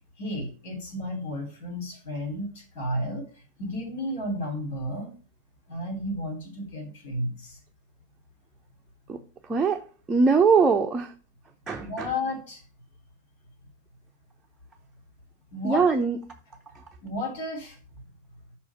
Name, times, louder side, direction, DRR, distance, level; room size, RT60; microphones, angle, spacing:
voice 1, 0.2-3.3 3.6-5.1 5.7-7.6 11.7-12.6 15.5-16.0 17.0-17.8, left 1 dB, 55° left, 1 dB, 2.9 m, -32 dB
voice 2, 9.5-9.8 10.1-11.1 11.7-12.1 15.6-16.2, right 5 dB, 15° right, 2 dB, 0.7 m, -21 dB
5.7 x 5.0 x 5.5 m, 0.37 s
figure-of-eight pair, 90°, 0 cm